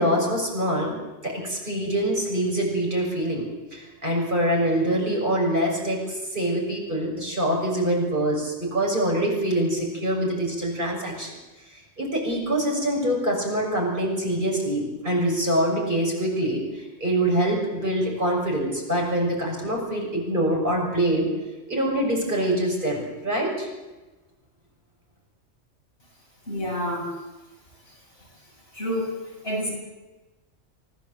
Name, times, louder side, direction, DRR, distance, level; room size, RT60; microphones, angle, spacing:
voice 1, 0.0-11.3 12.0-21.3 21.7-23.7, right 1 dB, 40° right, -1 dB, 6.8 m, -25 dB
voice 2, 26.5-27.1 28.7-29.2 29.4-29.7, equal, 50° left, -2 dB, 8.1 m, -28 dB
25.5 x 17.5 x 8.1 m, 1.1 s
omnidirectional pair, 1.3 m